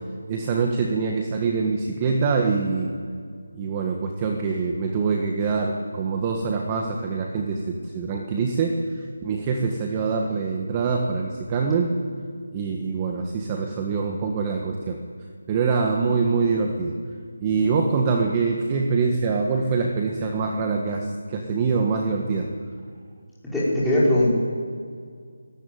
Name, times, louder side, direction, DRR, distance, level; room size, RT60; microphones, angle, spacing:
voice 1, 0.3-2.9 3.5-12.0 12.5-15.0 15.5-16.9 17.4-22.5, right 4 dB, 15° right, 2 dB, 1.6 m, -24 dB
voice 2, 23.5-24.3, left 1 dB, ahead, -10 dB, 5.6 m, -20 dB
23.5 x 18.0 x 9.4 m, 2.1 s
figure-of-eight pair, 170°, 0 cm